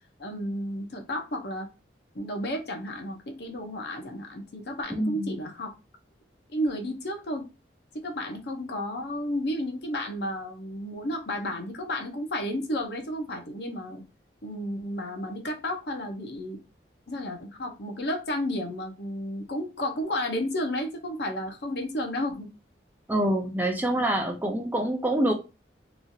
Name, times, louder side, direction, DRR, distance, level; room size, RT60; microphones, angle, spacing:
voice 1, 0.2-1.7 2.1-5.7 6.5-7.4 7.9-14.0 14.4-16.6 17.1-22.5, left 1 dB, 60° left, 3 dB, 0.7 m, -32 dB
voice 2, 4.9-5.4 23.1-25.3, right 1 dB, 10° right, 2 dB, 0.4 m, -26 dB
3.0 x 2.4 x 2.7 m, 0.29 s
head